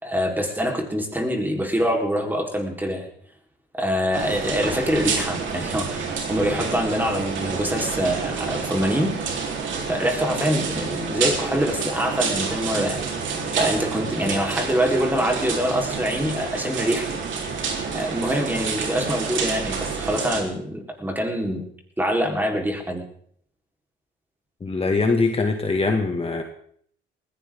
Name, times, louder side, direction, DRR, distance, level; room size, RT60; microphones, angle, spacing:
voice 1, 0.0-3.1 3.7-9.1 9.9-13.2 13.5-17.1 17.9-21.6 22.0-23.1, equal, 10° right, 1 dB, 4.2 m, -25 dB
sound 1, 4.1-20.4, right 5 dB, 75° right, 4.0 m, -28 dB
voice 2, 24.6-26.4, left 3 dB, 30° left, 3 dB, 2.1 m, -22 dB
20.0 x 16.5 x 3.8 m, 0.63 s
cardioid pair, 90°, 20 cm